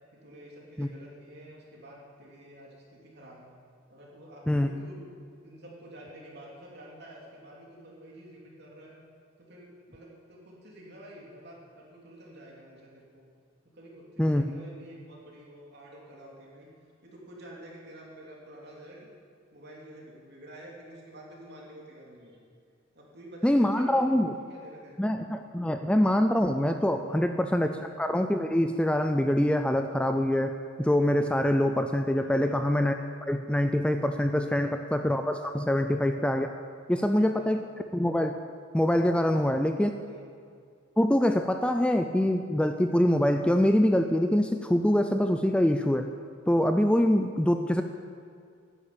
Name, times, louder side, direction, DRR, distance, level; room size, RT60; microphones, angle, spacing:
voice 1, 0.1-3.5 3.9-5.0 5.4-9.0 9.4-13.3 13.7-16.7 17.0-19.1 19.5-22.4 22.9-25.2 27.0-27.8 32.2-32.6 34.4-34.9 35.7-36.0 36.9-37.6 39.1-39.5 40.0-40.3, right 1 dB, 55° right, -3 dB, 3.3 m, -49 dB
voice 2, 23.4-24.3 25.0-36.6 36.9-37.6 37.9-38.3 38.7-39.9 41.0-46.1 46.5-47.8, left 1 dB, 5° left, 7 dB, 0.4 m, -25 dB
11.0 x 10.5 x 8.7 m, 2.3 s
head